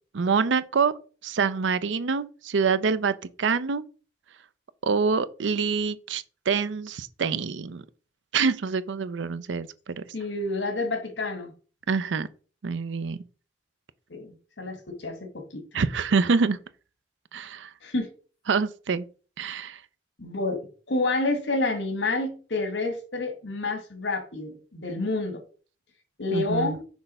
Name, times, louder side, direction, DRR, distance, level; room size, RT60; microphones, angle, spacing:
voice 1, 0.1-1.0 1.2-3.8 4.8-7.8 8.3-10.0 11.9-12.3 12.6-13.2 15.7-16.6 17.3-17.7 18.5-19.1 19.4-19.8 26.3-26.8, right 5 dB, 85° right, 0.5 m, -26 dB
voice 2, 10.1-11.5 14.1-15.6 17.8-18.1 20.2-25.4 26.2-26.9, left 2 dB, 80° left, 1.5 m, -29 dB
6.1 x 3.3 x 5.4 m
head